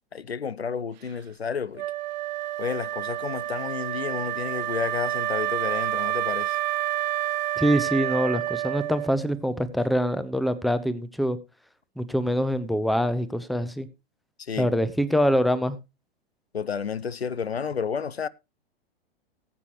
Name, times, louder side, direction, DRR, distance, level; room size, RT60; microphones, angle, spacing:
voice 1, 0.1-1.9 2.6-6.6 14.4-14.7 16.5-18.3, left 6 dB, 85° left, 0.6 m, -31 dB
Wind instrument woodwind instrument, 1.8-9.3, right 14 dB, 45° right, 0.6 m, -29 dB
voice 2, 7.6-11.4 12.0-13.9 14.6-15.8, equal, ahead, 0.6 m, -24 dB
19.0 x 8.3 x 3.1 m
figure-of-eight pair, 105°, 30 cm